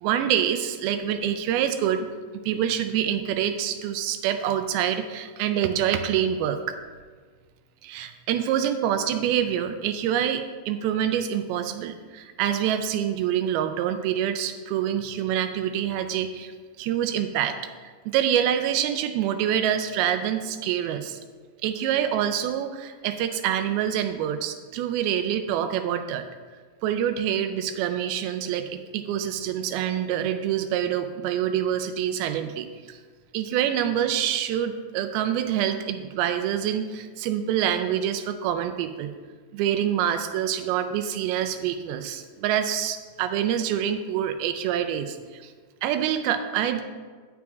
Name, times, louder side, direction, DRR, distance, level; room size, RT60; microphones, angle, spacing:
voice 1, 0.0-2.1 2.3-6.8 7.8-16.5 16.8-21.2 21.6-26.3 26.8-33.0 33.3-39.1 39.5-45.5 45.8-46.8, right 10 dB, 85° right, 7 dB, 2.4 m, -26 dB
17.0 x 6.0 x 2.3 m, 1.5 s
omnidirectional pair, 4.3 m